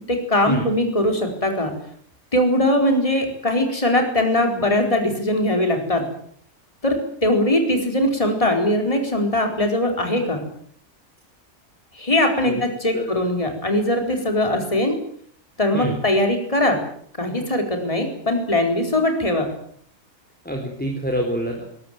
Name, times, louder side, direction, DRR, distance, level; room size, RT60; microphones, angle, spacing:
voice 1, 0.1-1.7 2.3-6.0 6.8-10.4 11.9-15.0 15.6-16.8 17.2-19.5, left 1 dB, 25° left, 4 dB, 4.6 m, -21 dB
voice 2, 20.4-21.8, right 1 dB, 5° left, 1 dB, 4.3 m, -26 dB
22.0 x 20.5 x 9.3 m, 0.63 s
omnidirectional pair, 1.5 m